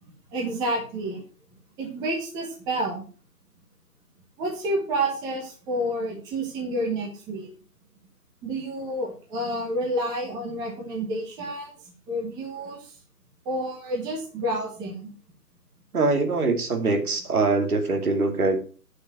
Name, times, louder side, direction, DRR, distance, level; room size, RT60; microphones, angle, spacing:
voice 1, 0.3-1.2 1.8-3.0 4.4-7.5 8.4-13.0 13.4-15.1, right 1 dB, 10° right, -1 dB, 1.2 m, -29 dB
voice 2, 15.9-18.6, right 3 dB, 65° right, 5 dB, 2.7 m, -23 dB
10.0 x 6.4 x 6.0 m, 0.38 s
figure-of-eight pair, 150°, 48 cm